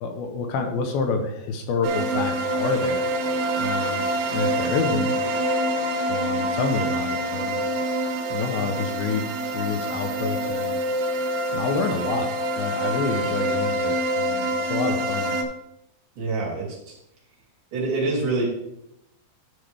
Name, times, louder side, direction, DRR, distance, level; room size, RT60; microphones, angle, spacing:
voice 1, 0.0-3.0 3.6-4.0 4.3-5.1 6.1-7.6 8.3-10.8 11.5-15.3, left 4 dB, 75° left, 5 dB, 2.5 m, -28 dB
sound 1, 1.8-15.4, right 1 dB, 85° right, 3.0 m, -26 dB
voice 2, 16.2-16.8 17.7-18.5, right 3 dB, 55° right, -4 dB, 3.8 m, -25 dB
11.0 x 6.2 x 3.4 m, 0.80 s
omnidirectional pair, 4.8 m